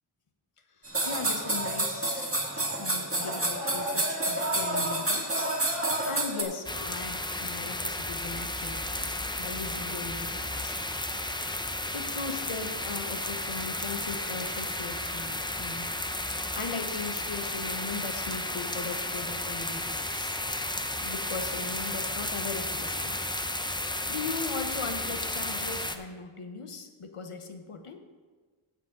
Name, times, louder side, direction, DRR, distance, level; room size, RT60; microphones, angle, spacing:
voice 1, 0.8-2.3 2.8-5.5 6.0-10.8 11.9-15.9 16.5-20.4 21.0-23.2 24.1-28.0, left 4 dB, 90° left, 6 dB, 1.1 m, -39 dB
sound 1, 0.9-6.4, right 1 dB, 25° right, 1.9 m, -29 dB
sound 2, 6.6-26.0, left 1 dB, 10° left, 0.6 m, -33 dB
15.5 x 6.7 x 3.8 m, 1.4 s
wide cardioid pair, 70°, 50 cm